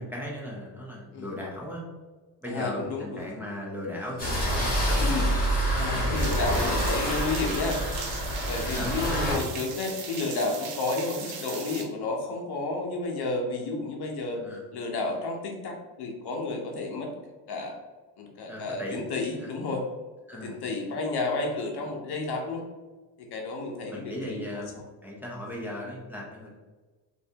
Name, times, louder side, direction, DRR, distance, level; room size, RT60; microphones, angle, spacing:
voice 1, 0.0-1.8 2.4-6.9 8.6-8.9 14.4-14.6 18.5-19.0 19.4-19.5 20.3-20.6 23.9-26.6, left 1 dB, 5° right, -4 dB, 0.7 m, -37 dB
voice 2, 2.5-3.2 5.0-5.3 5.8-7.8 8.5-14.4 14.7-17.1 17.5-17.8 18.2-19.8 20.4-22.6 23.2-24.6, left 3 dB, 55° left, 1 dB, 0.8 m, -31 dB
sound 1, 4.2-9.4, equal, 20° left, 1.5 m, -27 dB
sound 2, 6.2-11.8, right 6 dB, 70° right, 0.8 m, -38 dB
3.1 x 2.6 x 2.8 m, 1.3 s
cardioid pair, 100°, 46 cm